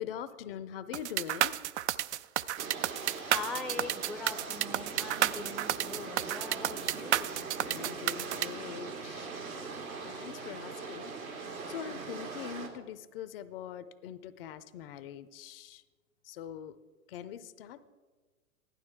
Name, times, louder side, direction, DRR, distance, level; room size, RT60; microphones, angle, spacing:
voice 1, 0.0-1.6 7.6-9.3 10.0-11.4 11.7-15.8 16.2-16.8 17.1-17.9, left 9 dB, 45° left, 14 dB, 0.6 m, -43 dB
sound 1, 0.9-8.5, right 12 dB, 55° right, 0.5 m, -31 dB
sound 2, 2.6-12.7, right 4 dB, 85° right, 2.5 m, -41 dB
voice 2, 3.1-7.5, left 3 dB, ahead, 4 dB, 0.5 m, -42 dB
15.5 x 11.5 x 3.6 m, 1.4 s
hypercardioid pair, 110°, 41 cm